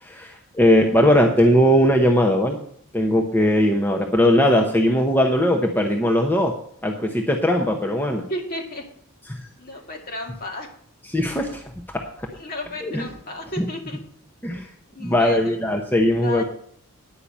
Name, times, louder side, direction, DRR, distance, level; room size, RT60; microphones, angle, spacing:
voice 1, 0.0-2.6 2.9-6.5 6.8-8.2 9.3-9.4 11.1-12.3 12.8-13.0 13.6-13.7 14.4-14.7 15.0-16.4, equal, 10° left, 2 dB, 0.8 m, -19 dB
voice 2, 8.3-8.8 9.6-10.7 12.4-14.0 14.9-15.5 16.2-16.4, left 1 dB, 40° left, 1 dB, 2.2 m, -33 dB
10.0 x 5.8 x 8.3 m, 0.63 s
head